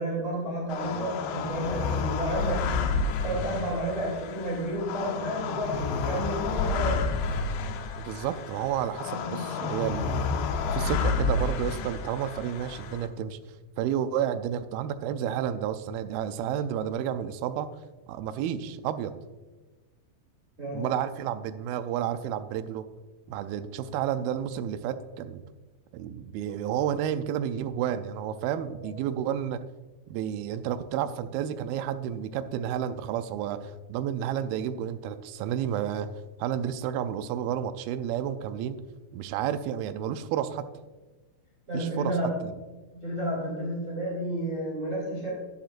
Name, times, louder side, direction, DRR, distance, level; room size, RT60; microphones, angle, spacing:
voice 1, 0.0-2.7 3.2-7.0 20.6-20.9 28.8-28.9 41.7-42.3 42.9-45.3, right 1 dB, 20° right, -4 dB, 2.7 m, -31 dB
sound 1, 0.7-13.1, left 4 dB, 85° left, 2.9 m, -30 dB
voice 2, 7.9-10.3 10.7-13.4 13.8-17.7 18.1-19.1 20.7-22.8 23.3-25.4 25.9-29.6 30.1-36.1 36.4-38.8 39.1-40.7 41.7-42.5, right 9 dB, 85° right, 10 dB, 2.1 m, -31 dB
13.0 x 10.5 x 2.5 m, 1.2 s
omnidirectional pair, 4.8 m